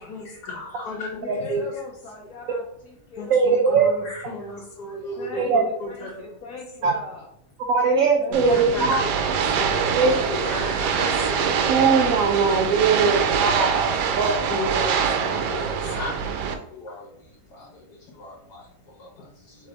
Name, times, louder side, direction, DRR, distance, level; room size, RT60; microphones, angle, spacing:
voice 1, 0.1-1.4 3.2-6.1 8.3-9.0 10.3-11.5 14.5-14.8 15.5-15.6 15.9-16.1 16.8-16.9, left 2 dB, 75° left, -2 dB, 1.5 m, -33 dB
voice 2, 1.2-4.0 5.2-7.3 8.2-9.1 10.2-11.3, left 4 dB, 60° left, -4 dB, 1.2 m, -39 dB
voice 3, 3.3-3.9 5.4-5.6 6.8-6.9 7.7-9.0 9.9-10.2 11.7-13.9 14.2-14.4, right 5 dB, 65° right, 2 dB, 0.9 m, -20 dB
sound 1, 8.3-16.5, right 6 dB, 85° right, 1.2 m, -24 dB
3.4 x 3.3 x 3.9 m, 0.74 s
omnidirectional pair, 1.7 m